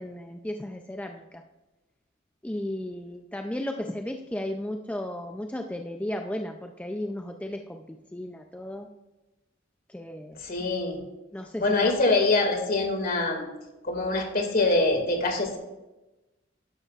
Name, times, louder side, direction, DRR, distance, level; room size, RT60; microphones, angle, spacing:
voice 1, 0.0-1.4 2.4-8.9 9.9-10.7 11.3-11.9, left 1 dB, 5° left, 4 dB, 0.4 m, -35 dB
voice 2, 10.4-11.0 11.6-13.5 13.8-15.6, left 2 dB, 50° left, 2 dB, 2.2 m, -24 dB
12.0 x 11.0 x 2.4 m, 1.0 s
head